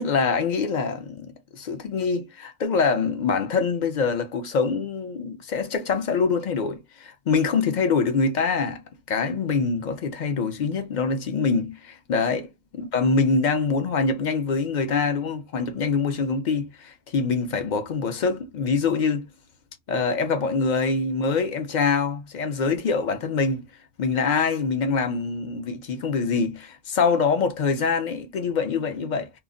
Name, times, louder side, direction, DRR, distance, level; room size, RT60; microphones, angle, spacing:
voice 1, 0.0-8.8 9.1-12.5 12.7-19.3 19.9-23.6 24.0-29.3, left 4 dB, 55° left, 0.6 m, -24 dB
2.3 x 2.1 x 3.6 m
omnidirectional pair, 1.0 m